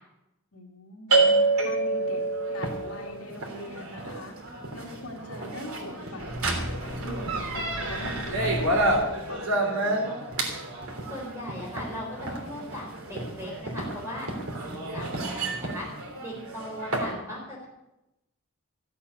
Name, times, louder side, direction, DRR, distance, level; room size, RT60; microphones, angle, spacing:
voice 1, 0.5-9.9, left 2 dB, 90° left, 1 dB, 2.4 m, -43 dB
sound 1, 1.1-17.1, right 2 dB, 90° right, 3.3 m, -28 dB
voice 2, 11.1-14.3 14.6-17.7, equal, 15° right, -4 dB, 4.3 m, -38 dB
15.0 x 8.5 x 8.2 m, 0.93 s
head